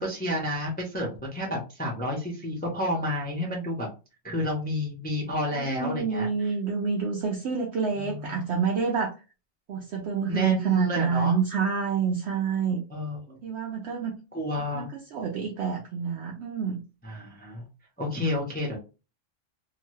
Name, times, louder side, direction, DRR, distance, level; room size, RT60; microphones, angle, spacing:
voice 1, 0.0-3.9 4.2-6.5 8.0-8.4 10.3-11.4 12.9-13.4 14.3-14.9 17.0-17.7 18.0-18.8, left 1 dB, 10° left, -2 dB, 0.5 m, -30 dB
voice 2, 5.5-9.1 9.7-12.8 13.4-14.2 14.7-16.8, right 6 dB, 65° right, 0 dB, 0.8 m, -27 dB
2.8 x 2.2 x 3.1 m, 0.32 s
omnidirectional pair, 1.4 m